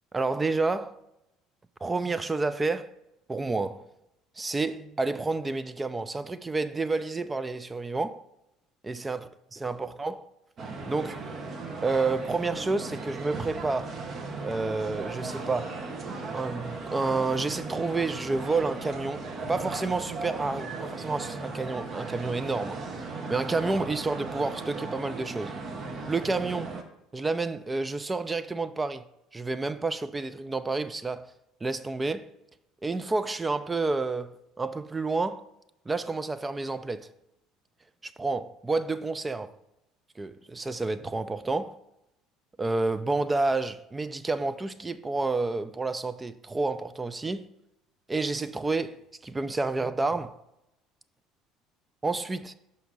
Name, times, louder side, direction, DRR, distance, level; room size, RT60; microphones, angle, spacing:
voice 1, 0.1-1.0 1.8-2.9 3.3-3.8 4.4-8.2 8.8-10.3 10.9-11.2 11.8-13.9 14.4-15.8 16.3-19.2 19.5-22.8 23.3-25.5 26.1-26.7 27.1-29.0 29.3-31.3 31.6-32.3 32.8-35.4 35.9-37.1 38.0-39.5 40.2-41.8 42.6-47.5 48.1-50.4 52.0-52.5, right 3 dB, 20° right, 0.4 m, -29 dB
sound 1, 10.6-26.8, right 3 dB, 45° right, 0.9 m, -37 dB
5.7 x 5.1 x 3.9 m
hypercardioid pair, 65°, 0 cm